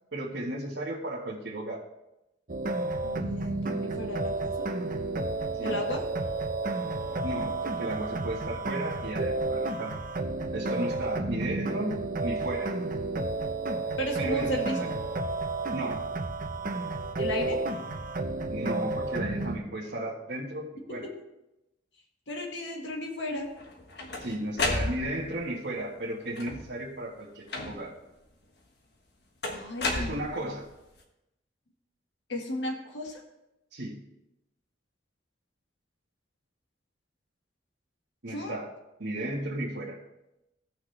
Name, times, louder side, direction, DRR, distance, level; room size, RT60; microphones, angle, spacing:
voice 1, 0.1-1.8 5.6-5.8 7.2-9.9 10.5-12.7 14.2-14.9 15.7-16.1 18.5-21.0 24.2-27.9 29.9-30.7 33.7-34.1 38.2-38.7 39.0-40.0, right 1 dB, 75° right, -7 dB, 1.6 m, -34 dB
sound 1, 2.5-19.6, right 2 dB, 50° right, 0.9 m, -31 dB
voice 2, 3.0-4.7 5.6-6.0 14.0-14.8 17.2-17.6 20.9-21.1 22.3-23.5 29.5-30.2 32.3-33.2 38.3-38.6, left 1 dB, 85° left, 1 dB, 1.9 m, -34 dB
sound 2, 23.6-25.4 26.3-26.8 27.5-28.0 29.4-30.7, left 2 dB, 60° left, 1.4 m, -32 dB
16.5 x 6.0 x 3.4 m, 0.92 s
head